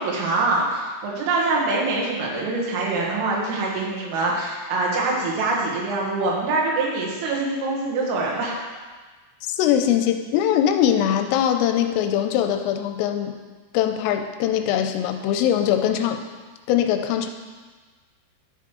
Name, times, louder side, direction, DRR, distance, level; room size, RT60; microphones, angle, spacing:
voice 1, 0.0-8.6, right 3 dB, 80° right, -3 dB, 4.0 m, -24 dB
voice 2, 9.5-13.4 13.7-16.2 16.7-17.3, left 10 dB, 85° left, 6 dB, 3.2 m, -21 dB
13.0 x 5.8 x 3.1 m, 1.4 s
omnidirectional pair, 5.9 m